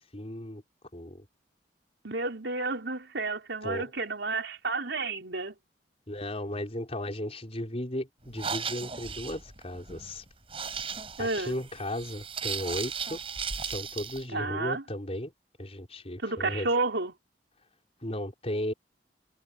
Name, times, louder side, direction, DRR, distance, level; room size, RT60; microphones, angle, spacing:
voice 1, 0.1-0.6 0.9-1.3 3.6-3.9 6.1-10.2 11.2-13.2 13.6-15.3 15.6-16.7 18.0-18.7, left 1 dB, 35° left, 5.2 m, -35 dB
voice 2, 2.0-5.6 11.2-11.6 14.3-14.8 16.2-17.1, right 3 dB, 85° right, 4.3 m, -31 dB
sound 1, 8.2-14.2, right 6 dB, 30° right, 5.5 m, -36 dB
head